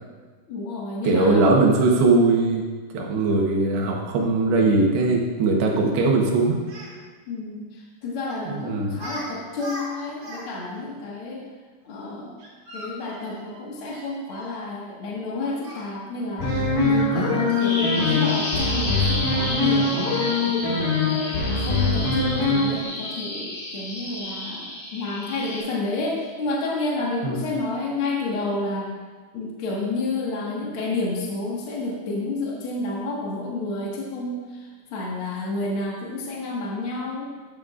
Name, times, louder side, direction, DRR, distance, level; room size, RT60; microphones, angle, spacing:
voice 1, 0.5-1.5 7.3-11.4 11.8-12.4 12.7-16.5 16.8-20.9 21.4-28.9 29.3-37.3, left 2 dB, 85° left, -3 dB, 1.1 m, -30 dB
voice 2, 1.0-2.6 2.9-6.6 8.5-9.0 27.2-27.4, right 3 dB, 70° right, 0 dB, 3.0 m, -20 dB
Speech, 6.7-6.9 8.3-8.5 8.9-9.3 9.5-10.5 10.7-10.8 12.4-14.5 15.6-15.8 16.4-18.6 19.2-19.5 20.1-20.4, equal, 45° right, 1.9 m, -40 dB
sound 1, 16.4-22.8, left 3 dB, 50° left, 3.0 m, -23 dB
Bird vocalization bird call bird song, 17.6-25.6, left 1 dB, 30° left, 3.3 m, -32 dB
12.0 x 10.0 x 2.5 m, 1.5 s
omnidirectional pair, 5.3 m